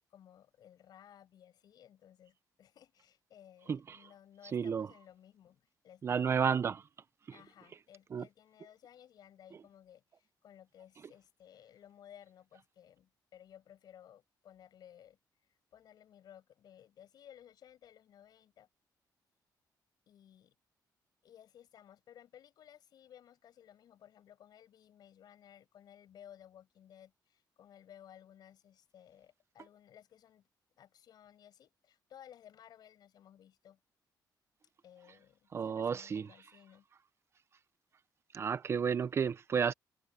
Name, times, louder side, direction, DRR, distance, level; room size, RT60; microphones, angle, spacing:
voice 1, 0.1-6.7 7.3-15.2 15.7-18.7 20.1-20.6 21.2-30.5 30.8-33.8 34.8-36.9, left 10 dB, 65° left, 5.6 m, -58 dB
voice 2, 4.5-4.9 6.0-6.8 8.1-8.2 35.5-36.2 38.3-39.7, right 6 dB, 35° right, 0.5 m, -31 dB
cardioid pair, 160°, 8 cm